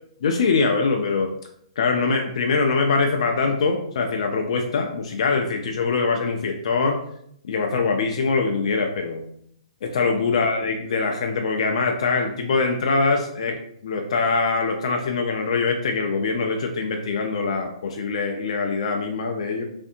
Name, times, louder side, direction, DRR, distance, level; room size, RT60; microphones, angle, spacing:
voice 1, 0.2-1.3 1.8-7.0 7.4-9.2 9.8-13.5 13.8-19.6, left 4 dB, 65° left, 3 dB, 0.4 m, -23 dB
2.6 x 2.5 x 2.5 m, 0.70 s
hypercardioid pair, 140°, 3 cm